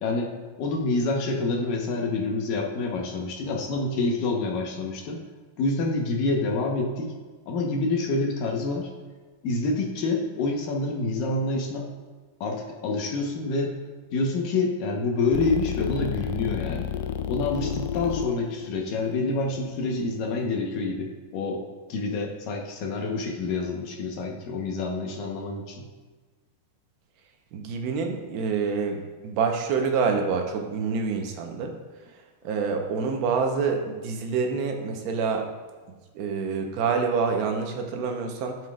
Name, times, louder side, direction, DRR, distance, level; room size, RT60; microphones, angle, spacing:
voice 1, 0.0-5.2 5.6-7.1 7.4-8.9 9.4-11.9 12.4-13.7 14.1-16.9 17.3-21.6 21.9-25.8, left 3 dB, 45° left, 1 dB, 1.1 m, -27 dB
sound 1, 15.3-20.4, left 9 dB, 65° left, 0.4 m, -32 dB
voice 2, 27.5-31.8 32.4-35.5 36.1-38.6, right 5 dB, 45° right, 3 dB, 1.0 m, -27 dB
11.5 x 4.5 x 2.5 m, 1.4 s
supercardioid pair, 145°, 0 cm